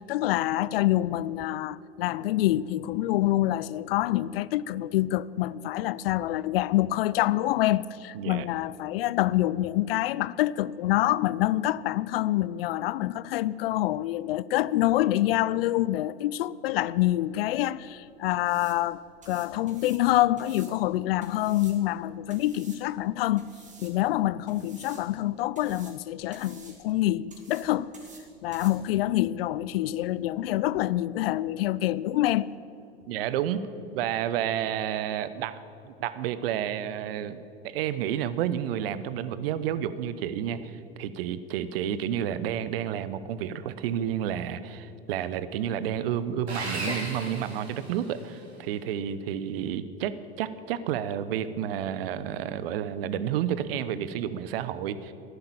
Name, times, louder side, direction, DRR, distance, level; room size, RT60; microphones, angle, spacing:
voice 1, 0.0-19.0 19.3-23.5 23.8-27.9 28.4-32.5 46.9-47.0, left 15 dB, 65° left, 0.5 m, -26 dB
voice 2, 8.1-8.5 33.1-33.7 33.9-37.4 37.6-55.1, right 10 dB, 65° right, 0.8 m, -30 dB
sound 1, 17.3-30.8, right 3 dB, 25° right, 2.8 m, -54 dB
Sawing, 46.5-48.4, right 2 dB, 85° right, 2.4 m, -35 dB
11.5 x 10.5 x 8.6 m
figure-of-eight pair, 75°, 32 cm